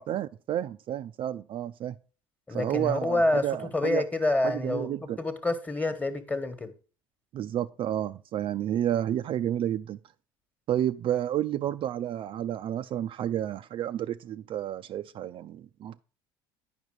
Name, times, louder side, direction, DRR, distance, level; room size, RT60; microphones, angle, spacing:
voice 1, 0.0-2.0 2.5-4.1 4.4-5.2 7.3-10.0 10.7-16.0, right 11 dB, 45° right, 0.4 m, -30 dB
voice 2, 2.5-3.5 3.7-6.7, left 2 dB, 15° left, 1.4 m, -27 dB
9.2 x 5.3 x 4.8 m
hypercardioid pair, 85°, 12 cm